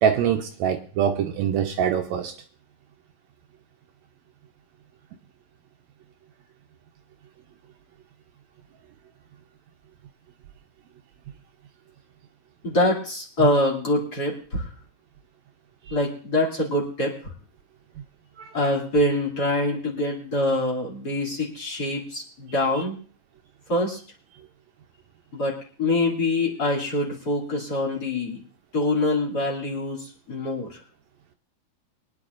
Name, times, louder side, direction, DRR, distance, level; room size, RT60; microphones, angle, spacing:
voice 1, 0.0-2.3 15.9-16.0 18.4-18.5 22.8-22.9, right 8 dB, 75° right, 1.8 m, -24 dB
voice 2, 12.6-14.7 15.9-17.3 18.5-23.0 23.7-24.0 25.3-28.4 28.7-30.8, left 1 dB, 30° left, 2.9 m, -25 dB
24.0 x 10.0 x 2.5 m
omnidirectional pair, 3.5 m